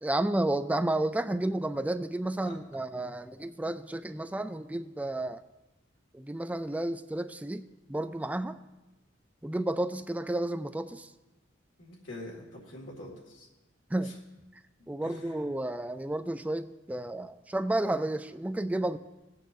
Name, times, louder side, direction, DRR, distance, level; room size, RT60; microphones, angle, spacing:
voice 1, 0.0-5.4 6.1-8.6 9.4-11.1 13.9-14.2 14.9-19.0, right 1 dB, 10° right, 10 dB, 0.3 m, -31 dB
voice 2, 11.8-13.5 15.0-15.4, left 1 dB, 90° left, -3 dB, 2.0 m, -45 dB
19.0 x 8.2 x 2.6 m, 1.1 s
head